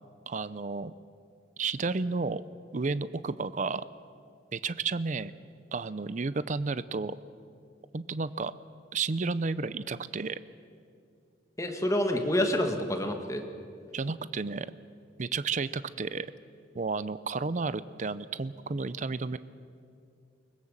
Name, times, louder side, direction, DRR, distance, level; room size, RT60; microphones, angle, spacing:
voice 1, 0.3-0.9 1.6-2.4 2.7-3.9 4.5-5.3 5.7-7.1 7.9-8.5 8.9-10.4 13.9-14.7 15.2-16.3 16.7-19.4, right 4 dB, 40° right, 15 dB, 0.5 m, -32 dB
voice 2, 11.6-13.4, left 1 dB, 15° left, 4 dB, 1.7 m, -28 dB
23.0 x 20.5 x 7.4 m, 2.4 s
head